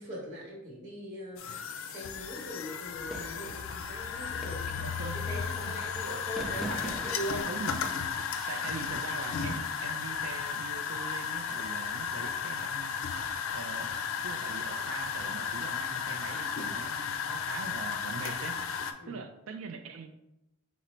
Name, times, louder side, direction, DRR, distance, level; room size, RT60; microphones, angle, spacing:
voice 1, 0.0-7.5 7.8-8.0 8.3-8.5 19.0-19.2, equal, 40° right, -5 dB, 1.2 m, -41 dB
sound 1, 1.4-18.9, left 6 dB, 70° left, 0.4 m, -34 dB
sound 2, 3.1-3.6 4.4-4.9 6.4-7.4, right 2 dB, ahead, 0.4 m, -40 dB
voice 2, 4.6-5.2 5.6-5.7 6.7-6.9 7.3-7.8 8.5-13.0 13.5-13.9 14.2-18.6 19.1-20.1, right 4 dB, 75° right, 7 dB, 0.4 m, -42 dB
5.0 x 2.0 x 4.3 m, 0.91 s
head